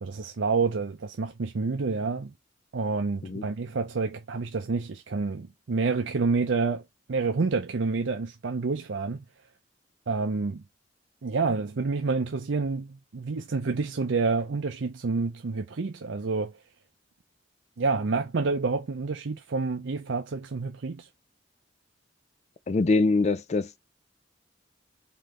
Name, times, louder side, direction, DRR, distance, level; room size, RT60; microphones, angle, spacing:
voice 1, 0.0-2.3 2.7-6.8 7.1-9.2 10.1-10.6 11.2-16.6 17.8-21.1, right 4 dB, 75° right, 0.6 m, -28 dB
voice 2, 22.7-23.8, left 3 dB, 35° left, 0.4 m, -24 dB
3.9 x 3.8 x 3.2 m
head